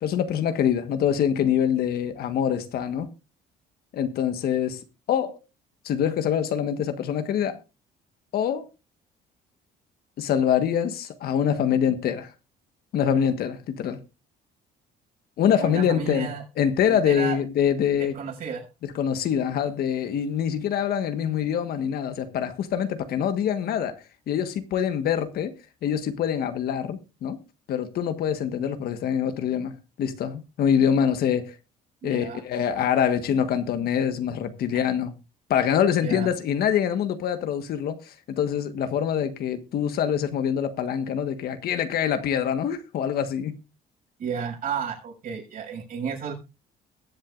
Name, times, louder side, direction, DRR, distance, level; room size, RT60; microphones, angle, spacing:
voice 1, 0.0-3.1 3.9-4.8 5.1-5.4 5.8-7.6 8.3-8.7 10.2-12.3 12.9-14.0 15.4-16.3 16.6-18.1 18.8-24.0 24.3-25.5 25.8-27.4 27.7-29.7 30.0-31.5 32.0-35.1 35.5-43.5, left 8 dB, 65° left, 1.4 m, -25 dB
voice 2, 15.6-16.4 16.8-17.4 17.9-18.6 32.0-32.4 34.7-34.8 36.0-36.3 44.2-46.3, right 6 dB, 60° right, 6.7 m, -32 dB
22.0 x 7.5 x 2.5 m
cardioid pair, 110°, 17 cm